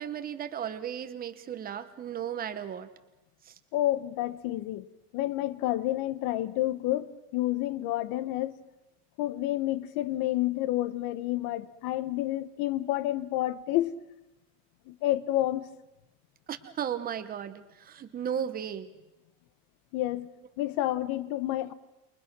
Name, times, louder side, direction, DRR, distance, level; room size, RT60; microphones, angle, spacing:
voice 1, 0.0-2.9 3.5-3.6 16.5-18.9, right 9 dB, 25° right, 1.0 m, -35 dB
voice 2, 3.7-4.9 5.1-8.5 9.2-14.0 14.9-15.6 19.9-20.3 20.6-21.7, left 15 dB, 65° left, 1.2 m, -29 dB
28.5 x 22.5 x 6.1 m
cardioid pair, 180°, 39 cm